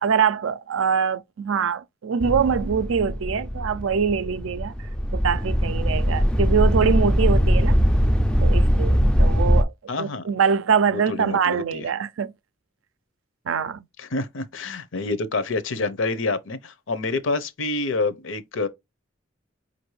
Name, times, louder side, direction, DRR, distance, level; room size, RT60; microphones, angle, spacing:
voice 1, 0.0-4.7 5.1-7.8 8.4-9.7 10.0-12.3 13.5-13.8, right 6 dB, 75° right, 0.5 m, -23 dB
sound 1, 2.2-9.6, equal, 5° left, 0.3 m, -21 dB
voice 2, 9.9-10.3 10.9-11.9 14.0-18.7, left 3 dB, 70° left, 0.7 m, -27 dB
5.0 x 2.6 x 3.1 m
head